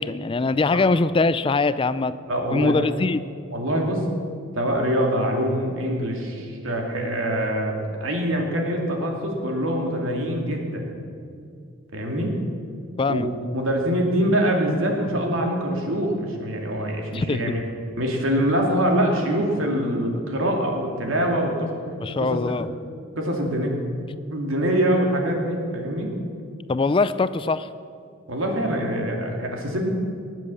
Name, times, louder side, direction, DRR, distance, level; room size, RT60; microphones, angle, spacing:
voice 1, 0.0-2.1 2.5-3.2 13.0-13.3 17.1-17.5 22.0-22.7 26.7-27.7, left 3 dB, 25° left, 14 dB, 0.3 m, -22 dB
voice 2, 2.3-2.9 3.5-4.1 4.5-10.9 11.9-12.4 13.1-13.3 13.5-17.6 18.0-21.7 22.2-22.7 23.2-23.8 24.3-26.1 28.3-29.9, equal, 80° right, 1 dB, 2.6 m, -24 dB
19.5 x 7.6 x 7.0 m, 2.4 s
head